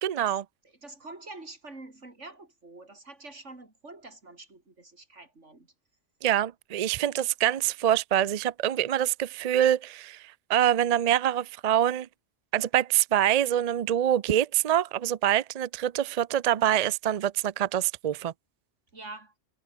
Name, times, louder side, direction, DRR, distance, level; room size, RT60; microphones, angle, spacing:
voice 1, 0.0-0.4 6.2-12.1 12.5-18.3, right 11 dB, 50° right, 0.5 m, -25 dB
voice 2, 0.8-5.7 18.9-19.3, right 2 dB, 80° right, 4.6 m, -46 dB
omnidirectional pair, 1.2 m